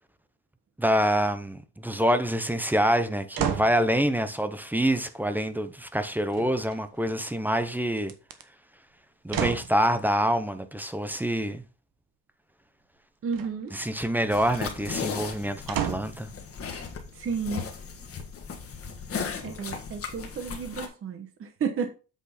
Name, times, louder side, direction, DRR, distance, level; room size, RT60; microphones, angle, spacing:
voice 1, 0.8-8.1 9.2-11.6 13.7-16.3, equal, 5° right, 0.6 m, -26 dB
sound 1, 3.3-3.8 6.3-7.0 8.0-8.4 9.3-9.8 13.3-13.8 15.7-16.2 16.9-17.0, right 8 dB, 55° right, 1.3 m, -31 dB
voice 2, 13.2-13.7 17.1-17.7 19.4-21.9, right 6 dB, 35° right, 1.0 m, -32 dB
sound 2, 14.3-20.9, left 6 dB, 35° left, 1.6 m, -36 dB
8.3 x 6.1 x 4.2 m
cardioid pair, 170°, 40 cm